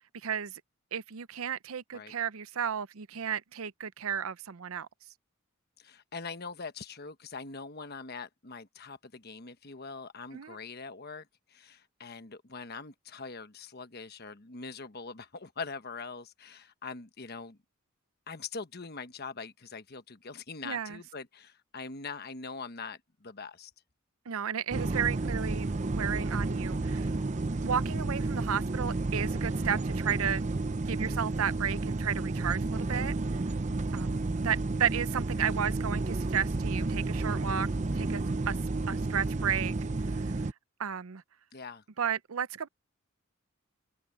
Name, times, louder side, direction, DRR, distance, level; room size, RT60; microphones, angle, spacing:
voice 1, 0.2-0.6 0.9-4.9 10.3-10.6 20.6-21.0 24.3-27.1 27.6-30.4 30.9-33.1 33.9-37.7 37.9-38.6 38.9-39.7 40.1-40.2 40.8-41.2 42.0-42.7, right 8 dB, 85° right, 0.6 m, -33 dB
voice 2, 5.8-17.6 18.3-23.7 31.1-31.2 41.5-41.8, left 4 dB, 50° left, 1.2 m, -43 dB
sound 1, 24.7-40.5, right 2 dB, 35° right, 0.6 m, -31 dB
head